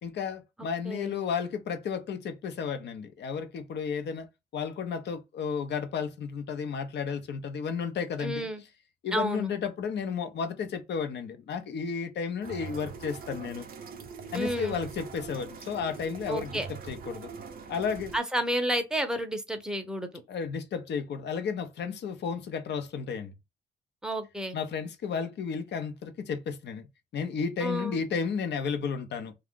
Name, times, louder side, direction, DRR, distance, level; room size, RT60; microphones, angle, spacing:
voice 1, 0.0-4.3 4.5-8.5 9.0-13.7 14.3-16.6 16.9-17.3 17.7-18.1 20.3-23.3 24.5-26.9 27.1-29.3, left 6 dB, 60° left, 0.7 m, -33 dB
voice 2, 8.2-8.6 9.1-9.5 14.3-14.8 16.3-16.7 18.1-20.2 24.0-24.6 27.6-28.0, right 1 dB, 5° right, 0.7 m, -31 dB
sound 1, 12.4-18.2, right 5 dB, 45° right, 0.6 m, -42 dB
2.4 x 2.3 x 3.6 m
cardioid pair, 90°, 20 cm